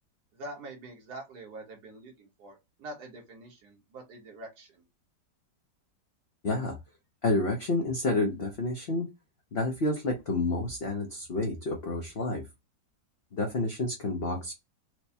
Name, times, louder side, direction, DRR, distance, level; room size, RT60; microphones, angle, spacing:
voice 1, 0.3-4.8, right 2 dB, 60° right, 1.7 m, -45 dB
voice 2, 6.4-6.8 7.2-9.1 9.5-12.4 13.3-14.5, left 2 dB, 55° left, 0.7 m, -29 dB
4.6 x 2.1 x 2.7 m
omnidirectional pair, 1.9 m